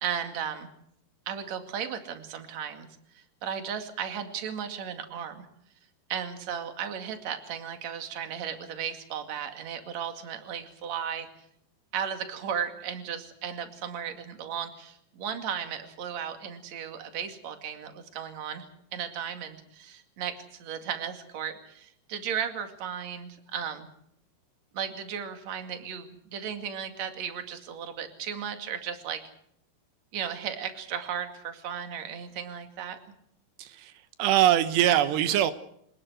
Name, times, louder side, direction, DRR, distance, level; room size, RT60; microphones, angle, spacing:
voice 1, 0.0-0.7 1.3-2.9 3.1-5.5 6.1-11.3 11.9-23.9 24.7-29.2 30.1-33.0, right 8 dB, 50° right, 7 dB, 3.1 m, -35 dB
voice 2, 33.6-33.9 34.2-35.5, right 12 dB, 85° right, 11 dB, 3.3 m, -22 dB
25.5 x 20.0 x 6.3 m, 0.70 s
omnidirectional pair, 4.8 m